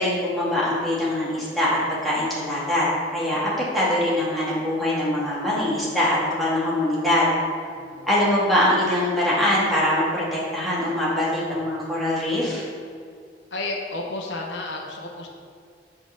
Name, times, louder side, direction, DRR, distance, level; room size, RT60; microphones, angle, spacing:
voice 1, 0.0-2.9 3.1-7.3 8.1-12.6, left 1 dB, ahead, -8 dB, 1.9 m, -23 dB
voice 2, 7.7-8.1 13.5-15.3, left 2 dB, 75° left, 0 dB, 1.0 m, -32 dB
7.7 x 3.9 x 6.4 m, 2.3 s
head